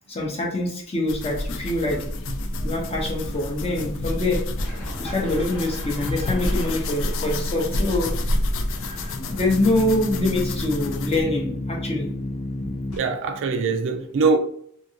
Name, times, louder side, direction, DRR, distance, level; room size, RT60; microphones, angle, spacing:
voice 1, 0.1-2.0 2.6-4.4 5.0-8.1 9.3-12.1, left 2 dB, 25° left, 0.7 m, -25 dB
sound 1, 1.1-11.2, left 1 dB, 60° left, 0.4 m, -29 dB
sound 2, 1.8-13.0, left 1 dB, 80° left, 0.9 m, -34 dB
voice 2, 12.9-14.4, right 4 dB, 60° right, 0.3 m, -22 dB
2.7 x 2.6 x 2.7 m
head